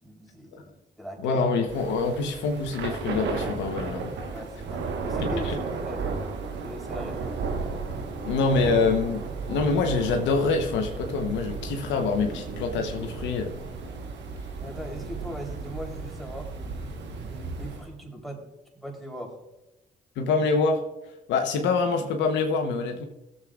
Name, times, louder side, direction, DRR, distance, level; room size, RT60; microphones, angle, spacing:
voice 1, 0.0-1.4 4.3-6.1 6.6-7.4 14.6-16.5 17.3-18.4 18.8-19.4, equal, ahead, 0 dB, 3.5 m, -40 dB
voice 2, 1.2-4.1 5.2-5.5 8.2-13.6 20.2-20.9 21.3-23.1, left 4 dB, 80° left, 4 dB, 1.0 m, -25 dB
Thunder / Rain, 1.6-17.9, right 4 dB, 75° right, 1.3 m, -34 dB
16.5 x 7.6 x 2.4 m, 0.96 s
supercardioid pair, 55°, 19 cm